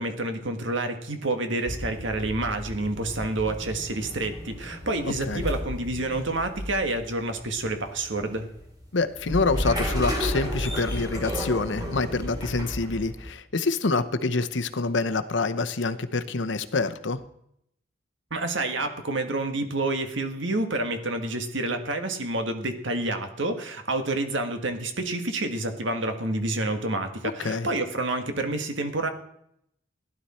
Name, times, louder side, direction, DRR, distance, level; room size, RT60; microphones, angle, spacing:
voice 1, 0.0-8.5 18.3-29.1, right 2 dB, 75° right, 6 dB, 1.7 m, -28 dB
sound 1, 1.6-13.3, equal, 20° right, 2.7 m, -33 dB
voice 2, 5.0-5.4 8.9-17.2 27.4-27.7, left 3 dB, 70° left, 11 dB, 0.8 m, -26 dB
15.5 x 11.0 x 4.3 m, 0.74 s
head